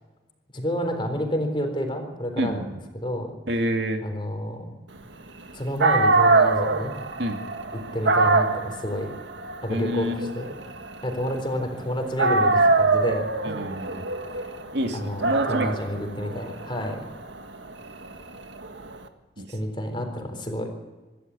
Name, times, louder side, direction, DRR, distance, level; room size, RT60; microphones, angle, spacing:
voice 1, 0.5-2.6 2.9-3.3 4.0-4.7 5.5-7.0 7.7-9.1 9.6-10.5 11.0-13.5 14.3-14.4 14.9-17.0 19.5-20.7, equal, 25° left, 4 dB, 4.0 m, -29 dB
voice 2, 2.4-2.8 3.5-4.0 7.2-7.4 9.7-10.4 13.4-14.1 14.7-15.9 19.4-19.5, equal, 65° right, 4 dB, 2.4 m, -28 dB
Dog, 5.5-5.6 5.8-11.8 12.2-19.0, right 3 dB, 85° right, 1.8 m, -24 dB
25.5 x 13.0 x 8.4 m, 1.2 s
head